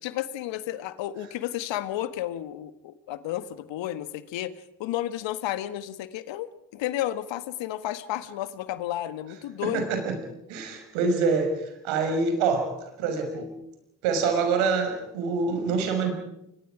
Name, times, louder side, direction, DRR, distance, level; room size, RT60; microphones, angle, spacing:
voice 1, 0.0-4.5 4.8-9.8, left 13 dB, 60° left, 13 dB, 1.6 m, -32 dB
voice 2, 9.6-10.2 10.5-13.5 14.0-16.1, right 4 dB, 70° right, 5 dB, 6.0 m, -26 dB
29.5 x 24.0 x 5.0 m, 0.82 s
hypercardioid pair, 50°, 50 cm